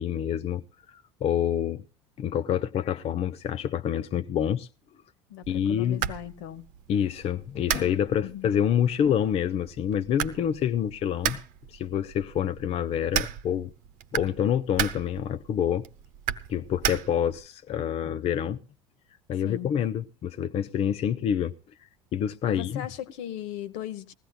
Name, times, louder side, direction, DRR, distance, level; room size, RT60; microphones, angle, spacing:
voice 1, 0.0-1.8 2.2-4.7 5.5-6.1 6.9-11.4 11.7-13.7 14.1-15.9 16.5-18.6 19.3-21.5 22.1-22.9, left 9 dB, 40° left, 0.5 m, -27 dB
voice 2, 5.3-6.6 8.2-8.6 19.4-19.7 22.4-24.1, left 11 dB, 65° left, 0.9 m, -38 dB
sound 1, 5.4-17.5, right 10 dB, 60° right, 0.9 m, -35 dB
20.0 x 15.5 x 2.2 m
hypercardioid pair, 70°, 16 cm